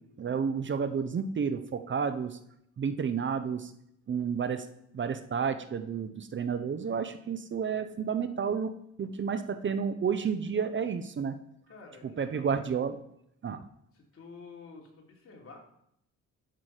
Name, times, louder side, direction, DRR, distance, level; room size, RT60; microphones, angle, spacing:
voice 1, 0.2-2.4 2.8-3.7 4.1-4.6 4.9-11.4 12.2-13.0 13.4-13.6, right 6 dB, 40° right, 10 dB, 0.8 m, -31 dB
voice 2, 11.7-12.6 13.9-15.6, left 4 dB, 45° left, 0 dB, 3.1 m, -50 dB
12.0 x 6.0 x 4.9 m, 0.75 s
cardioid pair, 90°, 30 cm